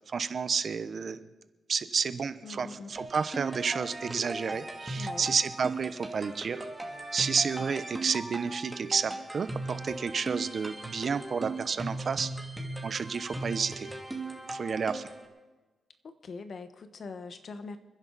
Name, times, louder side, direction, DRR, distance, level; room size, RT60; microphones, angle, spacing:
voice 1, 0.1-1.3 1.7-6.7 7.1-12.3 12.8-13.9 14.5-15.1, right 5 dB, 55° right, 12 dB, 0.9 m, -31 dB
voice 2, 2.4-3.0 5.0-5.3 16.0-17.8, left 4 dB, 55° left, 9 dB, 1.3 m, -42 dB
sound 1, 3.0-15.3, right 2 dB, 10° right, 2.7 m, -38 dB
30.0 x 10.5 x 4.2 m, 1.2 s
cardioid pair, 85°, 0 cm